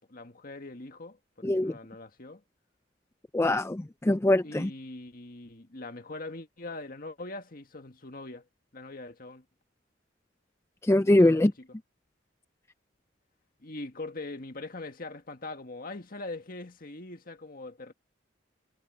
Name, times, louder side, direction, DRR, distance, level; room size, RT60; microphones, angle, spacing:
voice 1, 0.0-2.4 4.4-8.4 8.7-9.4 11.0-11.7 13.6-17.9, left 2 dB, 50° left, 1.8 m, -42 dB
voice 2, 1.4-1.7 3.3-4.7 10.8-11.5, left 1 dB, 15° left, 0.4 m, -23 dB
head